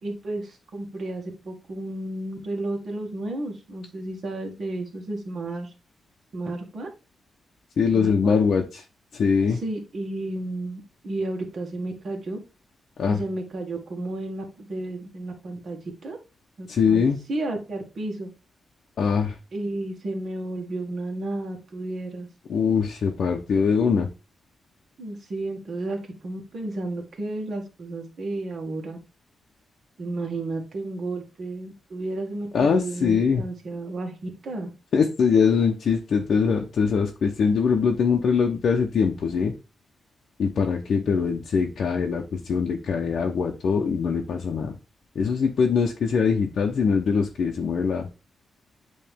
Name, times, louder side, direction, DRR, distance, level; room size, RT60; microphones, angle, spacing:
voice 1, 0.0-5.7 6.3-6.9 7.9-8.4 9.5-12.4 13.1-16.2 16.6-18.3 19.5-22.3 25.0-29.0 30.0-34.7, right 2 dB, 50° right, 1 dB, 2.1 m, -32 dB
voice 2, 7.8-8.8 9.1-9.6 13.0-13.2 16.7-17.2 19.0-19.4 22.5-24.1 32.5-33.4 34.9-39.5 40.4-44.7 45.1-48.1, left 6 dB, 60° left, 1 dB, 0.8 m, -22 dB
8.6 x 3.2 x 3.6 m, 0.30 s
wide cardioid pair, 150°, 0 cm